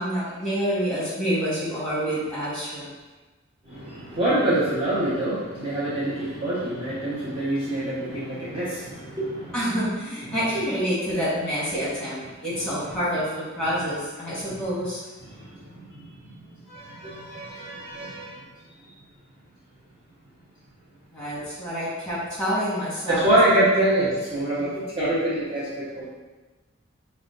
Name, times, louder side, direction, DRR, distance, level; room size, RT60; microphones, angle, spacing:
voice 1, 0.0-2.9 9.5-15.0 21.1-23.2 24.7-24.8, equal, 5° left, -9 dB, 1.5 m, -27 dB
voice 2, 3.7-9.6 14.3-14.5 15.2-16.3 16.7-18.4 18.8-18.9 23.1-26.1, right 1 dB, 30° right, -10 dB, 0.9 m, -25 dB
4.9 x 2.2 x 3.8 m, 1.2 s
head